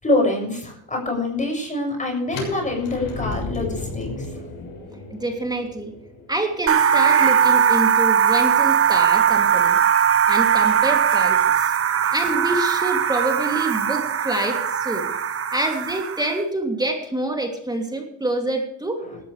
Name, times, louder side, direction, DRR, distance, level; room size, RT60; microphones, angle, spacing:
voice 1, 0.0-4.3 19.0-19.2, left 2 dB, 20° left, 2 dB, 7.0 m, -25 dB
sound 1, 2.3-8.1, left 3 dB, 85° left, 6.9 m, -34 dB
voice 2, 5.1-5.9 6.3-9.8 10.3-11.7 12.1-15.1 15.5-19.0, right 2 dB, 10° right, 2 dB, 2.9 m, -26 dB
sound 2, 6.7-16.4, right 7 dB, 40° right, 1.1 m, -19 dB
18.0 x 14.0 x 3.4 m, 0.71 s
cardioid pair, 110°, 35 cm